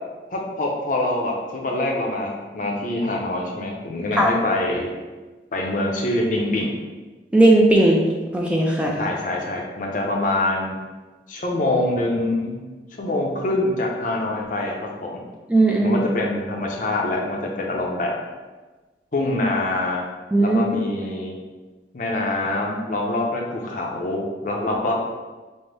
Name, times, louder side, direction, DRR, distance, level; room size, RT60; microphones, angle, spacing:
voice 1, 0.3-4.9 5.5-6.7 8.9-10.8 11.3-12.6 13.0-15.2 15.8-18.2 19.1-20.0 20.4-21.4 21.9-24.9, left 2 dB, 45° left, 0 dB, 0.6 m, -25 dB
voice 2, 7.3-8.0 8.3-9.0 15.5-16.0 20.3-20.6, right 2 dB, 5° right, -1 dB, 0.3 m, -16 dB
5.2 x 2.0 x 3.3 m, 1.3 s
head